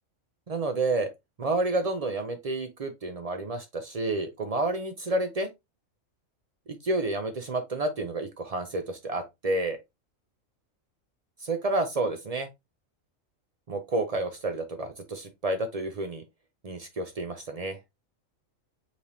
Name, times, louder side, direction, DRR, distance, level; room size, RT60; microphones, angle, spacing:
voice 1, 0.5-1.1 1.4-5.5 6.8-9.8 11.4-12.5 13.7-16.2 16.6-17.8, right 2 dB, 60° right, 0.4 m, -30 dB
5.2 x 3.4 x 2.6 m
omnidirectional pair, 1.4 m